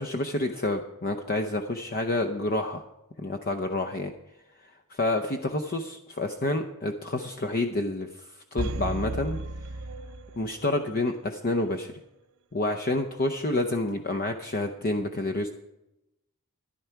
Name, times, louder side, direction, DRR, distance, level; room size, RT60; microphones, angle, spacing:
voice 1, 0.0-2.8 3.2-4.1 4.9-8.1 8.5-9.4 10.4-11.9 12.5-15.5, left 2 dB, 40° left, 6 dB, 0.7 m, -28 dB
sound 1, 8.6-10.8 11.1-11.2, right 2 dB, 65° right, 0.7 m, -34 dB
14.0 x 11.0 x 4.6 m, 0.91 s
head